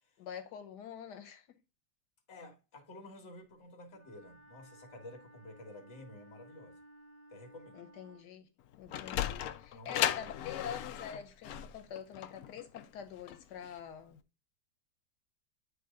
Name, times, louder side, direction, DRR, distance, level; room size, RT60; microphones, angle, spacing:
voice 1, 0.2-1.5 7.7-8.5 8.8-14.2, left 8 dB, 90° left, 1.4 m, -45 dB
voice 2, 2.3-6.8 7.3-7.8 9.7-10.1, left 2 dB, 45° left, 1.7 m, -51 dB
Wind instrument woodwind instrument, 3.9-8.3, right 1 dB, 20° left, 0.9 m, -58 dB
Sliding door, 8.6-13.8, left 11 dB, 70° left, 1.0 m, -36 dB
9.4 x 3.3 x 3.6 m
omnidirectional pair, 1.8 m